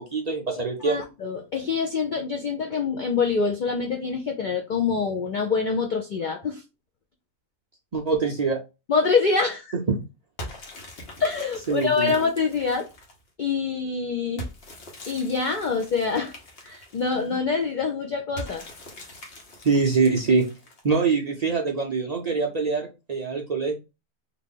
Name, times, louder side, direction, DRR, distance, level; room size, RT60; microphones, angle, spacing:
voice 1, 0.0-1.0 7.9-8.6 11.7-12.1 19.6-20.5 20.8-23.7, right 4 dB, 55° right, 0.4 m, -24 dB
voice 2, 0.8-6.6 8.9-9.7 11.2-12.9 13.4-14.5 15.1-16.3 16.6-18.7, left 5 dB, 75° left, 0.4 m, -25 dB
sound 1, 10.4-13.3 14.4-17.4 18.4-21.0, equal, 50° left, 1.1 m, -42 dB
2.9 x 2.5 x 3.5 m
omnidirectional pair, 1.4 m